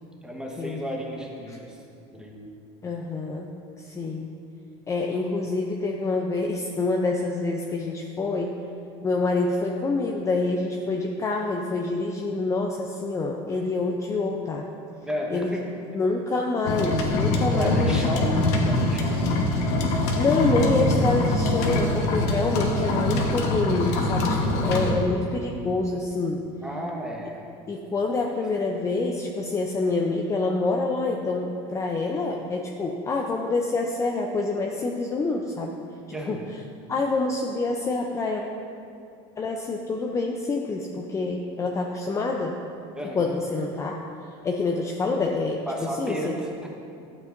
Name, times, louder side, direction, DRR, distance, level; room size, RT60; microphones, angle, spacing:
voice 1, 0.2-1.8 2.1-2.4 15.0-15.7 17.5-19.2 26.6-27.5 36.1-36.4 42.9-43.2 45.7-46.7, equal, 5° right, -1 dB, 1.1 m, -33 dB
voice 2, 2.8-3.5 3.8-4.3 4.9-8.5 9.0-14.7 15.3-15.5 15.9-18.0 19.8-26.4 27.7-35.8 36.3-36.4 36.9-38.4 39.4-42.5 43.1-44.0 44.4-46.2, left 3 dB, 20° left, 1 dB, 0.5 m, -27 dB
sound 1, 16.6-24.9, left 1 dB, 75° left, 1.2 m, -23 dB
12.0 x 7.5 x 2.6 m, 2.5 s
supercardioid pair, 125°, 14 cm